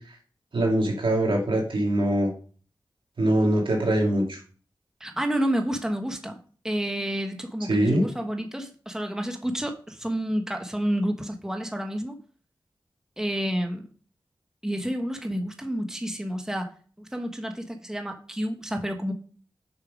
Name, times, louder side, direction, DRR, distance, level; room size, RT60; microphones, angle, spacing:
voice 1, 0.5-2.3 3.2-4.4 7.7-8.0, right 1 dB, 80° right, 0 dB, 2.5 m, -23 dB
voice 2, 5.0-6.4 6.6-12.2 13.2-13.9 14.6-16.7 17.0-19.1, equal, 5° right, 4 dB, 1.2 m, -29 dB
6.7 x 5.7 x 5.0 m, 0.41 s
cardioid pair, 45°, 9 cm